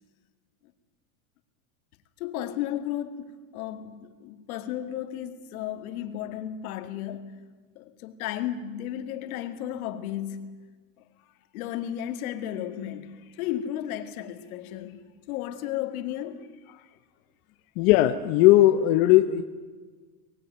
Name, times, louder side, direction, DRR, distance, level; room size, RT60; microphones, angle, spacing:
voice 1, 2.2-7.4 7.8-10.6 11.5-15.0 15.3-16.5 16.9-17.0, left 11 dB, 65° left, 2.2 m, -34 dB
voice 2, 17.8-19.4, left 14 dB, 35° left, 0.9 m, -18 dB
23.5 x 19.0 x 9.2 m
supercardioid pair, 175°, 46 cm